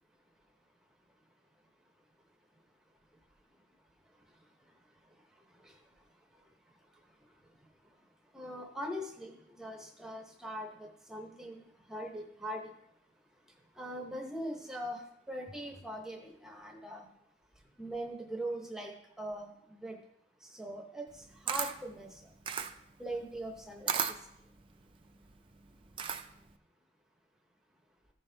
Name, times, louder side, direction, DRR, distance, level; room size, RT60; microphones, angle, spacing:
voice 1, 8.3-11.6 11.9-12.7 13.8-17.1 17.8-20.0 20.4-22.2 23.0-24.0, right 1 dB, 5° right, 1 dB, 0.9 m, -41 dB
Camera, 21.1-26.5, right 7 dB, 30° right, 0.5 m, -37 dB
15.0 x 5.4 x 3.4 m, 0.77 s
head